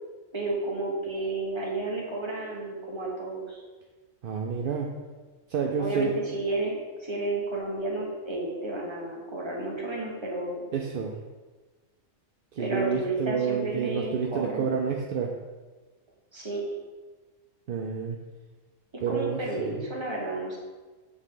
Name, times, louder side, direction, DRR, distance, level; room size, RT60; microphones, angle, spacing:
voice 1, 0.3-3.6 5.8-6.7 7.0-10.7 12.6-14.7 16.3-16.6 19.1-20.6, right 2 dB, 20° right, -3 dB, 1.2 m, -32 dB
voice 2, 4.2-4.9 5.5-6.2 10.7-11.1 12.5-15.3 17.7-18.2 19.0-19.9, right 6 dB, 60° right, 1 dB, 0.6 m, -29 dB
8.3 x 3.7 x 3.7 m, 1.3 s
omnidirectional pair, 1.4 m